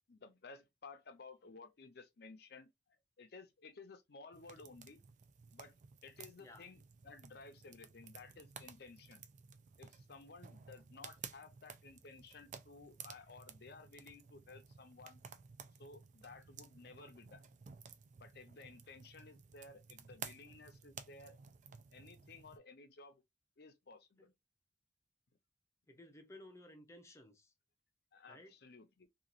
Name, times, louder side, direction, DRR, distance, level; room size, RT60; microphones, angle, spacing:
voice 1, 0.1-2.7 3.2-5.0 5.5-5.7 6.0-9.2 9.8-15.2 15.8-17.4 18.2-21.4 21.9-23.2 23.6-24.3 28.1-29.1, left 4 dB, 60° left, 0.7 m, -56 dB
sound 1, 4.3-22.6, right 6 dB, 40° right, 0.4 m, -55 dB
voice 2, 25.9-27.5 28.3-28.5, left 1 dB, 15° left, 0.6 m, -56 dB
2.9 x 2.4 x 2.4 m
head